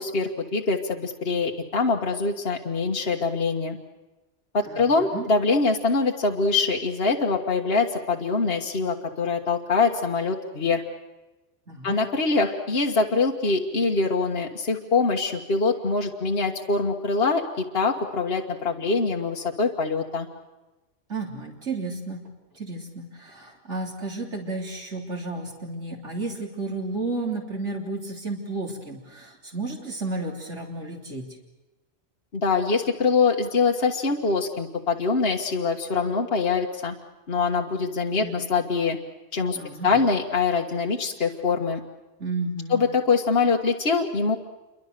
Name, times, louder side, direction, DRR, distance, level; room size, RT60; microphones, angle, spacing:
voice 1, 0.0-3.8 4.5-10.8 11.8-20.3 32.3-36.9 37.3-39.0 39.3-39.6 39.8-41.8 42.7-44.4, left 4 dB, 55° left, 1 dB, 1.7 m, -24 dB
voice 2, 4.7-5.3 11.7-12.0 21.1-22.2 22.5-31.3 38.2-38.4 39.5-39.9 42.2-42.8, right 3 dB, 80° right, -1 dB, 3.8 m, -32 dB
28.0 x 24.5 x 6.7 m, 1.1 s
omnidirectional pair, 1.2 m